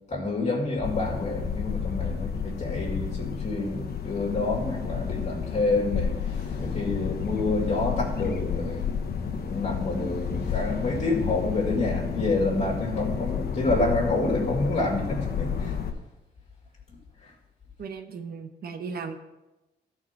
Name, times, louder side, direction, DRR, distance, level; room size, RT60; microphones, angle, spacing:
voice 1, 0.1-15.7 16.9-17.3, left 2 dB, 40° left, -3 dB, 2.3 m, -28 dB
sound 1, 0.8-15.9, left 7 dB, 60° left, 1.0 m, -31 dB
voice 2, 17.8-19.2, right 5 dB, 65° right, 6 dB, 0.9 m, -36 dB
13.0 x 4.7 x 5.8 m, 1.0 s
cardioid pair, 120°, 17 cm